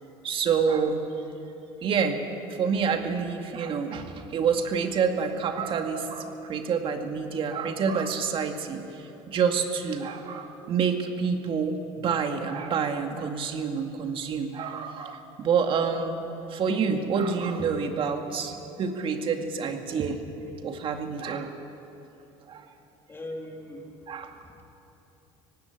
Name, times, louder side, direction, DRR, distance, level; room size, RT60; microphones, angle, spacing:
voice 1, 0.2-1.0 1.8-2.2 2.5-8.8 9.3-16.2 16.5-20.2 20.6-21.5 22.5-22.6 24.1-24.3, right 6 dB, 50° right, 5 dB, 2.2 m, -27 dB
voice 2, 23.1-24.6, left 1 dB, 20° left, 1 dB, 3.6 m, -41 dB
18.5 x 16.0 x 9.8 m, 3.0 s
supercardioid pair, 100°, 12 cm